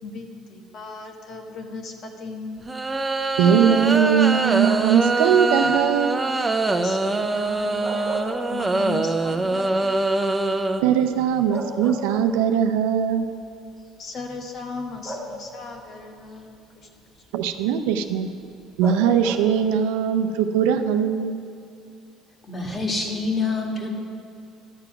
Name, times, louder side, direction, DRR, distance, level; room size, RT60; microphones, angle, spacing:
voice 1, 0.0-2.6 6.8-10.0 14.0-16.9, left 3 dB, 50° left, 3 dB, 1.3 m, -37 dB
sound 1, 2.7-10.8, right 2 dB, 15° right, 0.7 m, -23 dB
voice 2, 3.4-6.2 10.8-13.2 17.3-18.3 18.8-21.4, right 8 dB, 90° right, 7 dB, 0.6 m, -20 dB
sound 2, 4.6-5.1 7.6-9.0 9.4-9.5 11.0-11.1 11.5-12.6 13.7-13.8 15.0-15.8 18.8-19.7, equal, 5° left, 1.6 m, -35 dB
voice 3, 22.5-24.0, left 3 dB, 25° left, 1 dB, 1.9 m, -26 dB
12.0 x 7.0 x 5.9 m, 2.6 s
supercardioid pair, 100°, 0 cm